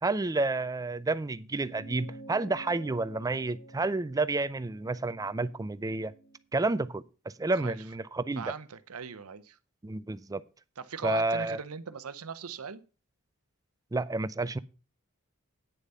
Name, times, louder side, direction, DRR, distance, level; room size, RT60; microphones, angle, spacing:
voice 1, 0.0-6.1 6.5-7.0 7.4-8.5 9.8-10.4 11.0-11.6 13.9-14.6, right 3 dB, 15° right, 0.4 m, -30 dB
sound 1, 1.6-6.4, right 2 dB, 70° left, 1.8 m, -50 dB
voice 2, 8.4-9.6 10.8-12.8, right 6 dB, 75° right, 0.7 m, -39 dB
9.2 x 7.0 x 5.4 m
head